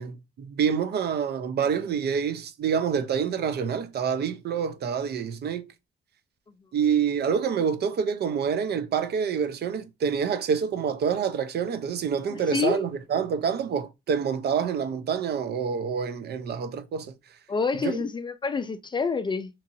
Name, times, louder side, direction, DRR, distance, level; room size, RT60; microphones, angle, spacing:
voice 1, 0.0-5.6 6.7-17.1 17.8-18.0, right 7 dB, 55° right, 0.5 m, -27 dB
voice 2, 12.3-12.8 17.5-19.5, left 4 dB, 25° left, 0.4 m, -27 dB
2.9 x 2.5 x 2.6 m
cardioid pair, 90°, 20 cm